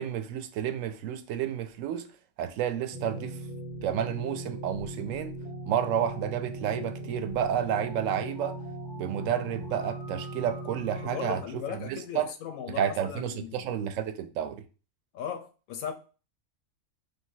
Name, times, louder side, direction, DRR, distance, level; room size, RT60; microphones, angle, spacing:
voice 1, 0.0-2.1 2.4-3.4 3.8-5.4 5.7-8.6 8.9-11.4 11.7-12.3 12.8-14.6, right 9 dB, 75° right, 0.9 m, -30 dB
sound 1, 2.9-11.4, right 1 dB, ahead, 0.9 m, -39 dB
voice 2, 11.0-13.7 15.1-15.9, left 8 dB, 90° left, 1.1 m, -37 dB
3.2 x 2.7 x 4.5 m
omnidirectional pair, 1.4 m